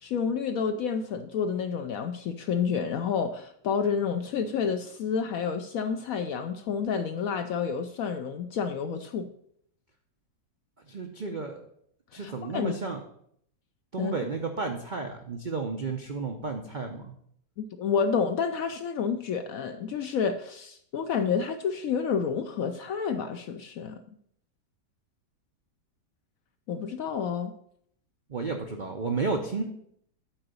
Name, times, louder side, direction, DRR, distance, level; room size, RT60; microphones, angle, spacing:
voice 1, 0.0-9.3 12.1-12.7 14.0-14.1 17.6-24.0 26.7-27.5, left 6 dB, 70° left, 8 dB, 0.8 m, -29 dB
voice 2, 10.9-11.6 12.1-13.0 13.9-17.1 28.3-29.6, right 4 dB, 60° right, 4 dB, 0.5 m, -32 dB
8.7 x 3.9 x 6.7 m, 0.67 s
omnidirectional pair, 1.9 m